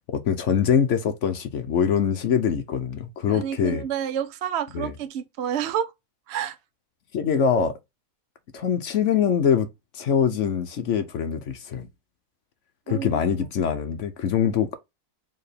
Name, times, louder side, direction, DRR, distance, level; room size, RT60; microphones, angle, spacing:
voice 1, 0.1-3.8 4.7-4.9 7.1-7.8 8.5-9.7 9.9-11.9 12.9-14.8, left 7 dB, 60° left, 0.9 m, -23 dB
voice 2, 3.3-5.9 6.3-6.6 12.9-13.2, right 9 dB, 60° right, 0.7 m, -29 dB
4.6 x 3.5 x 3.3 m
omnidirectional pair, 1.6 m